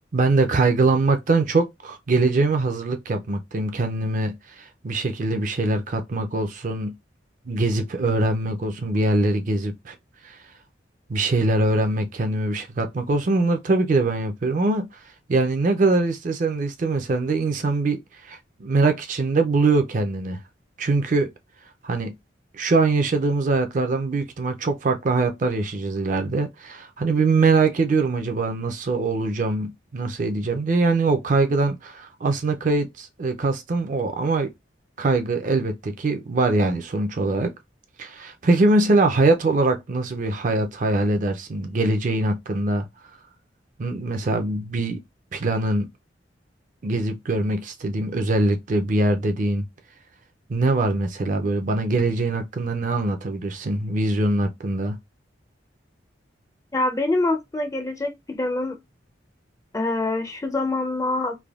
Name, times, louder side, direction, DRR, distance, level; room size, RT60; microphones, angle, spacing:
voice 1, 0.1-6.9 7.5-9.9 10.2-10.4 11.1-14.9 15.3-20.4 20.8-21.3 21.8-22.1 22.5-34.5 35.0-37.5 38.0-42.9 43.8-45.0 45.3-45.9 46.8-49.6 50.5-55.0, right 3 dB, 40° right, 0.4 m, -23 dB
voice 2, 56.7-58.8 59.7-61.4, left 2 dB, 15° left, 0.4 m, -25 dB
3.3 x 2.2 x 2.3 m
head